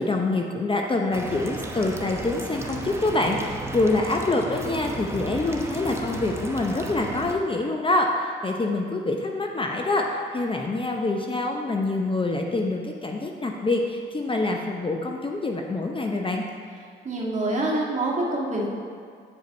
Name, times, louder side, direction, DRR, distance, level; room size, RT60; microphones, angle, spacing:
voice 1, 0.0-16.4, left 2 dB, 25° left, 2 dB, 0.7 m, -26 dB
sound 1, 1.1-7.3, right 1 dB, 15° right, 0.9 m, -34 dB
voice 2, 17.0-18.7, right 2 dB, 35° right, -3 dB, 1.7 m, -26 dB
8.4 x 5.1 x 3.9 m, 2.2 s
supercardioid pair, 65°, 20 cm